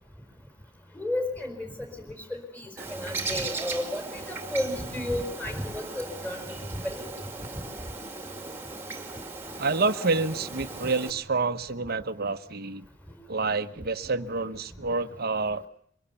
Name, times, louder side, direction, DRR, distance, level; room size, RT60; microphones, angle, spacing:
voice 1, 0.9-6.4 6.8-7.1, left 1 dB, 10° left, 6 dB, 4.8 m, -33 dB
Bird, 2.8-11.1, right 3 dB, 10° right, 2.3 m, -38 dB
voice 2, 9.6-12.9 13.3-15.7, right 3 dB, 50° right, 10 dB, 1.1 m, -28 dB
24.0 x 22.5 x 7.0 m, 0.64 s
head